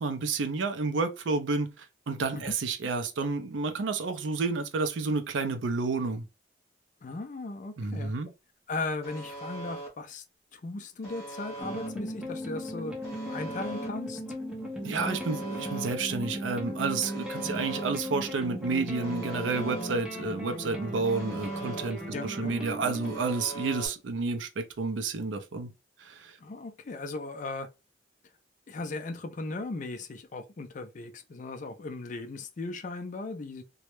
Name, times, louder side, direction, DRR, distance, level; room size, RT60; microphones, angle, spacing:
voice 1, 0.0-6.2 7.8-8.3 14.8-25.7 26.0-26.4, right 4 dB, 85° right, 0.5 m, -30 dB
voice 2, 7.0-8.1 8.7-10.2 10.5-12.9 13.3-14.2 15.0-15.2 17.4-17.6 22.1-22.5 26.4-27.7 28.7-33.6, left 3 dB, 45° left, 0.4 m, -37 dB
Alarm, 9.0-9.9 11.0-11.9 13.0-13.9 15.0-15.9 17.0-17.9 19.0-19.9 21.0-21.9 23.0-23.9, right 2 dB, 15° left, 0.9 m, -41 dB
sound 1, 11.6-23.2, equal, 5° right, 0.6 m, -37 dB
2.2 x 2.0 x 2.9 m
head